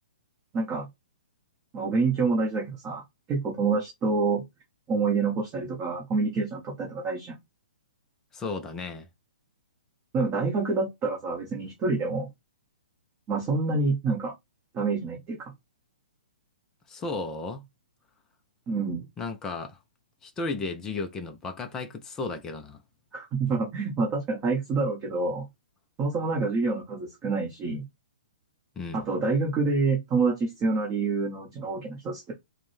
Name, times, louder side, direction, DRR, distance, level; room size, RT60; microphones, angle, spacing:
voice 1, 0.5-0.9 1.7-3.0 3.3-4.4 4.9-7.4 10.1-12.3 13.3-14.3 14.7-15.5 18.7-19.0 23.1-25.5 26.0-27.8 28.9-32.3, right 4 dB, 15° right, 1.1 m, -27 dB
voice 2, 8.3-9.1 16.9-17.7 19.2-19.8 20.2-22.8 28.8-29.0, left 3 dB, 10° left, 0.4 m, -34 dB
5.1 x 2.1 x 3.1 m
hypercardioid pair, 170°, 5 cm